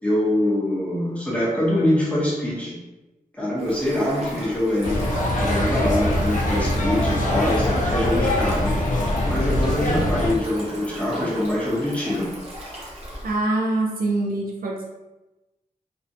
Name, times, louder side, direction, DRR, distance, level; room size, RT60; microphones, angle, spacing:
voice 1, 0.0-2.8 3.3-8.8 9.3-12.3, left 1 dB, 10° left, -6 dB, 0.7 m, -24 dB
Stream, 3.6-13.4, right 1 dB, 45° right, 0.8 m, -38 dB
sound 1, 4.8-10.3, left 1 dB, 60° left, 0.4 m, -23 dB
voice 2, 13.2-14.9, right 2 dB, 75° right, -1 dB, 0.5 m, -24 dB
2.6 x 2.1 x 2.6 m, 1.0 s
wide cardioid pair, 135°, 15 cm